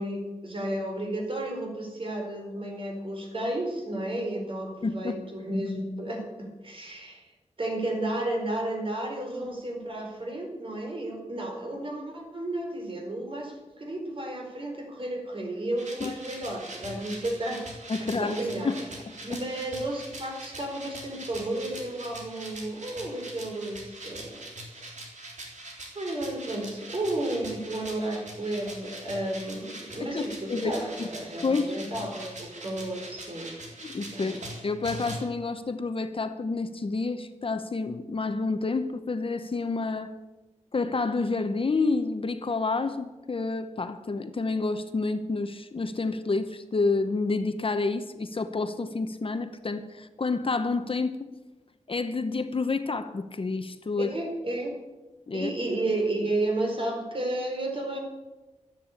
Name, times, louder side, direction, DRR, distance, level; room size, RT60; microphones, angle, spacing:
voice 1, 0.0-7.2 7.6-18.9 19.2-24.3 24.7-25.1 25.9-33.5 34.1-34.4 54.0-54.7 55.3-58.0, right 1 dB, 45° right, 1 dB, 4.5 m, -32 dB
voice 2, 4.8-5.2 16.0-16.1 17.9-18.4 18.6-18.8 19.3-19.4 30.0-30.7 31.0-31.1 31.4-31.8 33.8-40.1 40.7-51.3 51.9-54.1 55.3-55.5, left 3 dB, 45° left, 9 dB, 0.9 m, -29 dB
sound 1, 15.8-35.2, right 1 dB, 75° right, 3.8 m, -42 dB
13.0 x 10.5 x 8.4 m, 1.1 s
wide cardioid pair, 110°, 13 cm